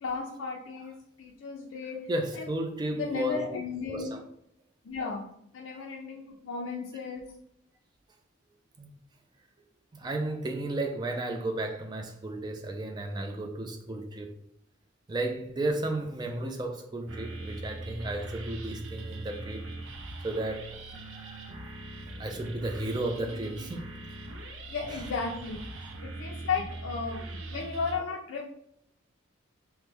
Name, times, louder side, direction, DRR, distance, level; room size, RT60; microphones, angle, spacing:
voice 1, 0.0-2.0 2.4-2.5 2.9-4.2 4.8-5.3 5.5-7.3 24.7-25.6 26.0-28.5, left 5 dB, 80° left, 0.4 m, -34 dB
voice 2, 2.1-3.4 3.9-4.2 5.8-5.9 8.8-8.9 9.9-14.3 15.1-19.6 20.2-21.8 22.2-23.9 25.8-25.9 27.5-27.6, right 1 dB, 20° right, 0.3 m, -33 dB
sound 1, 17.1-28.0, right 2 dB, 80° right, 0.5 m, -41 dB
3.0 x 2.1 x 3.4 m
head